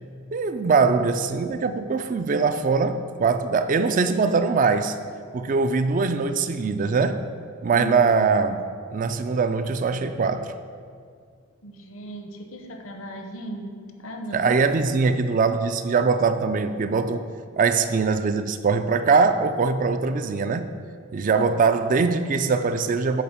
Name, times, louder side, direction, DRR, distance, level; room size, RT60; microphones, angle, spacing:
voice 1, 0.3-5.0 5.3-7.2 7.6-10.5 14.3-17.3 17.6-20.7 21.1-23.2, right 4 dB, 40° right, 10 dB, 0.3 m, -22 dB
voice 2, 11.6-14.5 15.0-15.1, right 1 dB, 70° left, 4 dB, 0.9 m, -37 dB
8.6 x 4.3 x 5.5 m, 2.2 s
head